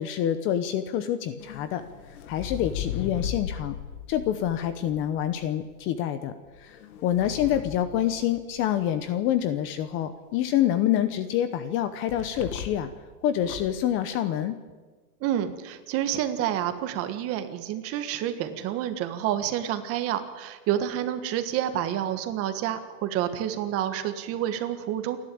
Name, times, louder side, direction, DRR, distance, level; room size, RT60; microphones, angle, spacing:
voice 1, 0.0-1.8 2.3-3.8 4.1-6.3 6.6-6.8 7.0-12.9 13.2-14.5, left 11 dB, 25° left, 11 dB, 0.9 m, -26 dB
sound 1, 1.4-5.5 6.5-8.8 12.1-13.0 13.4-13.8, left 9 dB, 65° left, 2.2 m, -37 dB
voice 2, 15.2-25.2, right 11 dB, 30° right, 9 dB, 1.6 m, -29 dB
28.5 x 11.5 x 8.7 m, 1.3 s
supercardioid pair, 155°, 47 cm